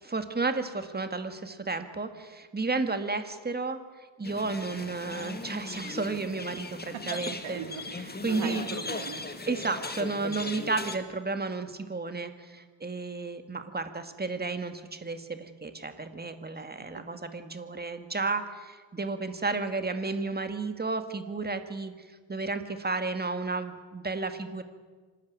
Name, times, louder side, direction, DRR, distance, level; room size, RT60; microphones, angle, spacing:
voice 1, 0.0-7.6 8.2-8.6 9.5-24.6, right 3 dB, 20° right, 8 dB, 1.9 m, -32 dB
sound 1, 4.2-11.0, left 3 dB, 20° left, 1.8 m, -38 dB
voice 2, 7.1-9.2 16.6-16.7, right 6 dB, 85° right, 6 dB, 2.8 m, -40 dB
26.0 x 13.0 x 9.4 m, 1.4 s
cardioid pair, 105°, 47 cm